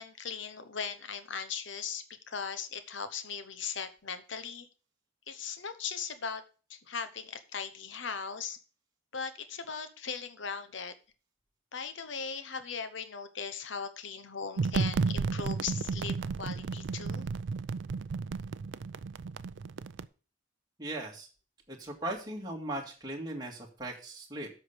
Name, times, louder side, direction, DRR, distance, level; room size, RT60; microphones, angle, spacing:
voice 1, 0.0-4.7 5.3-6.4 6.7-8.6 9.1-10.9 11.7-17.3, left 6 dB, 65° left, 11 dB, 0.9 m, -39 dB
sound 1, 14.6-20.0, right 4 dB, 60° right, 0.4 m, -33 dB
voice 2, 20.8-21.3 21.7-24.5, right 1 dB, 20° right, -1 dB, 1.9 m, -38 dB
8.0 x 5.8 x 6.6 m, 0.36 s
head